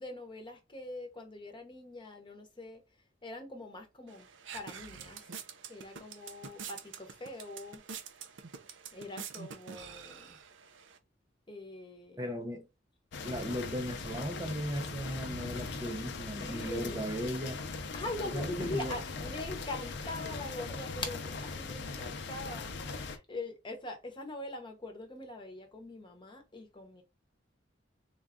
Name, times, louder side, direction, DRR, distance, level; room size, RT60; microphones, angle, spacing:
voice 1, 0.0-2.8 3.2-4.3 4.5-5.2 5.7-7.8 8.9-10.4 11.5-12.2 16.4-17.1 17.9-27.0, left 2 dB, 25° left, 0.9 m, -43 dB
sound 1, 4.1-11.0, right 6 dB, 70° right, 0.6 m, -47 dB
voice 2, 12.2-12.7 13.2-17.6 18.3-18.9, equal, 20° right, 0.6 m, -36 dB
sound 2, 13.1-23.2, left 3 dB, 65° left, 0.6 m, -40 dB
3.9 x 2.4 x 3.5 m
head